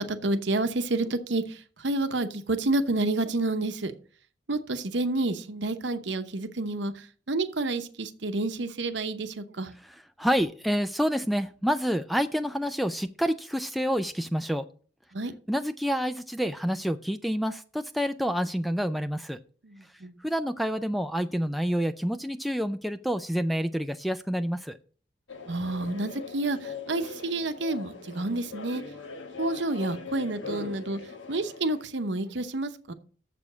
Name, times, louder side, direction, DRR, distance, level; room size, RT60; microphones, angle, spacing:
voice 1, 0.0-3.9 4.5-9.7 15.1-15.3 19.6-20.2 25.5-28.8 29.4-31.0 31.3-32.9, right 2 dB, 75° right, 9 dB, 0.9 m, -29 dB
voice 2, 10.2-14.7 15.5-19.4 20.2-24.8, equal, ahead, 11 dB, 0.3 m, -28 dB
sound 1, 25.3-31.8, left 4 dB, 90° left, 1.2 m, -40 dB
7.1 x 6.9 x 6.2 m, 0.41 s
head